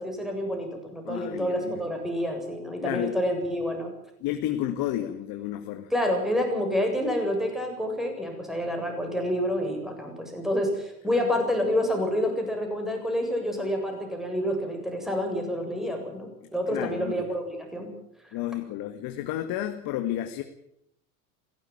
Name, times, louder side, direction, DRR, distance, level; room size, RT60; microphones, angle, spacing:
voice 1, 0.0-3.9 5.9-17.9, equal, ahead, 3 dB, 7.6 m, -28 dB
voice 2, 1.1-1.8 2.8-3.2 4.2-5.9 11.1-11.2 16.7-17.3 18.3-20.4, left 12 dB, 50° left, 6 dB, 2.1 m, -31 dB
17.5 x 17.0 x 9.3 m, 0.74 s
hypercardioid pair, 95°, 44 cm